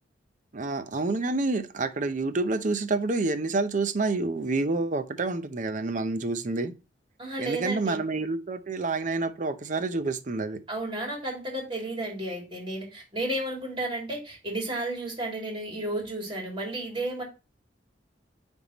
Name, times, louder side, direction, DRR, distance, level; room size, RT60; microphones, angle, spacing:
voice 1, 0.5-6.7 7.4-10.6, right 3 dB, 45° right, 0.7 m, -28 dB
voice 2, 7.2-8.0 10.7-17.2, right 1 dB, 30° right, 2.8 m, -32 dB
9.3 x 3.6 x 2.9 m
head